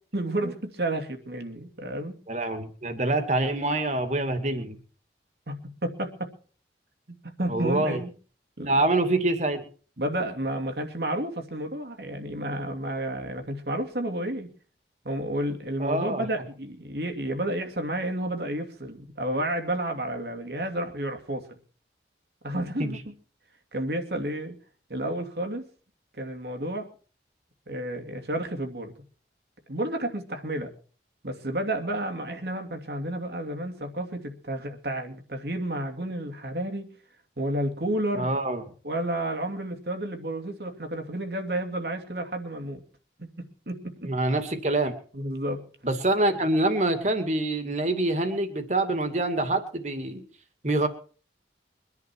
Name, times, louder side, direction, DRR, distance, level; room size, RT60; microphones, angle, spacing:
voice 1, 0.1-2.2 5.5-6.3 7.4-8.1 8.6-8.8 10.0-14.5 15.0-21.6 22.4-23.0 23.7-24.6 24.9-25.7 26.2-26.9 27.7-28.9 29.7-30.7 31.2-36.9 37.4-38.3 38.8-42.8 43.2-44.1 45.1-45.6, right 1 dB, 65° right, 4 dB, 2.7 m, -31 dB
voice 2, 2.3-4.8 7.5-8.0 8.7-9.6 15.8-16.2 22.8-23.0 38.1-38.6 44.0-45.0 45.8-50.2 50.6-50.9, right 2 dB, 40° right, 7 dB, 2.4 m, -25 dB
23.5 x 11.0 x 4.6 m, 0.41 s
head